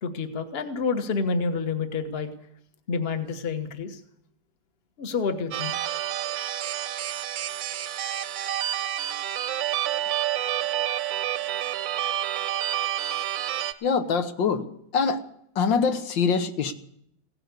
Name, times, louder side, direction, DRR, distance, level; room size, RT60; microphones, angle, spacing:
voice 1, 0.0-2.3 2.9-4.0 5.0-5.7, left 4 dB, 35° left, 1.4 m, -28 dB
sound 1, 5.5-13.7, right 12 dB, 85° right, 1.5 m, -29 dB
voice 2, 13.8-14.7 14.9-15.2 15.6-16.7, left 5 dB, 85° left, 1.9 m, -24 dB
16.5 x 10.5 x 8.1 m
omnidirectional pair, 2.0 m